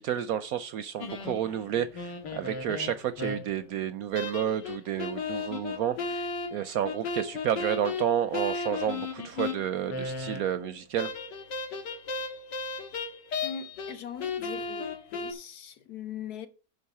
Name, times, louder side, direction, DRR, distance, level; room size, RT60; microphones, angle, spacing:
voice 1, 0.0-6.2 6.5-11.1, right 10 dB, 70° right, 0.9 m, -30 dB
sound 1, 1.0-3.7 4.1-10.7 11.0-14.0 14.2-15.3, left 4 dB, 85° left, 2.0 m, -35 dB
voice 2, 13.4-16.5, left 7 dB, 65° left, 1.5 m, -41 dB
10.0 x 4.0 x 7.0 m
omnidirectional pair, 1.9 m